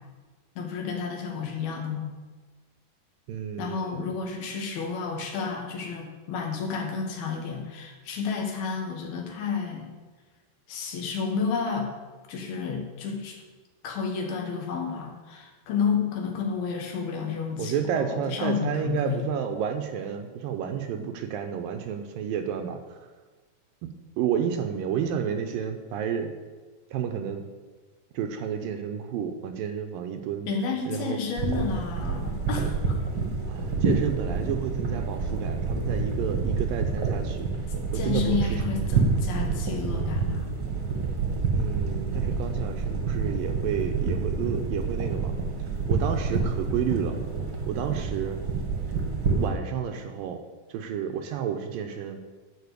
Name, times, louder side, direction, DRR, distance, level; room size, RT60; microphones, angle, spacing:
voice 1, 0.6-2.1 3.6-9.9 10.7-11.9 12.3-13.4 13.8-19.2 30.5-33.0 37.9-40.5, left 5 dB, 80° left, 2 dB, 3.4 m, -31 dB
voice 2, 3.3-4.1 17.6-23.1 23.8-26.3 26.9-27.5 28.1-30.5 30.9-31.2 33.5-37.5 37.9-38.6 41.5-45.3 45.7-47.2 47.7-48.4 49.4-50.4 50.7-52.2, right 8 dB, 80° right, 5 dB, 2.3 m, -31 dB
sound 1, 31.4-49.5, right 4 dB, 45° right, 1.4 m, -28 dB
12.0 x 5.0 x 8.2 m, 1.3 s
omnidirectional pair, 4.3 m